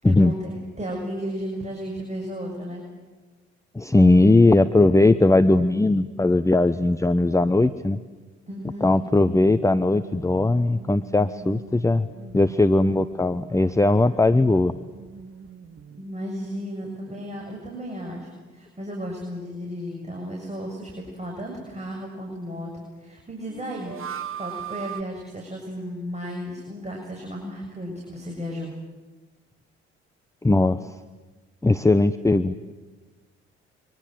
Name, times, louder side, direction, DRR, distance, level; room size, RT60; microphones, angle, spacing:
voice 1, 0.0-2.8 8.5-8.9 12.3-12.5 15.9-23.9 24.3-28.7, equal, 20° right, 0 dB, 7.4 m, -34 dB
voice 2, 3.7-8.0 8.8-12.1 12.3-14.7 30.4-30.9 31.6-32.5, left 2 dB, 10° left, 12 dB, 0.9 m, -19 dB
sound 1, 8.5-16.3 16.5-16.6 23.5-25.0, right 8 dB, 40° right, 1.3 m, -41 dB
29.5 x 24.5 x 7.9 m, 1.3 s
figure-of-eight pair, 45°, 32 cm